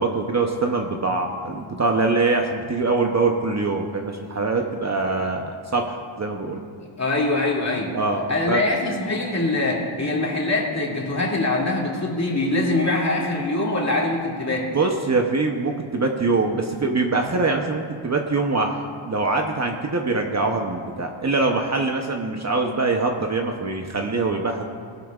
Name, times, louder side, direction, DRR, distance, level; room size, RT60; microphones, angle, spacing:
voice 1, 0.0-6.6 7.9-8.6 14.7-24.6, right 3 dB, 35° right, 2 dB, 0.8 m, -23 dB
voice 2, 6.8-7.9 8.3-14.7, left 2 dB, 35° left, -4 dB, 2.4 m, -23 dB
20.0 x 11.5 x 2.4 m, 2.1 s
wide cardioid pair, 135°, 49 cm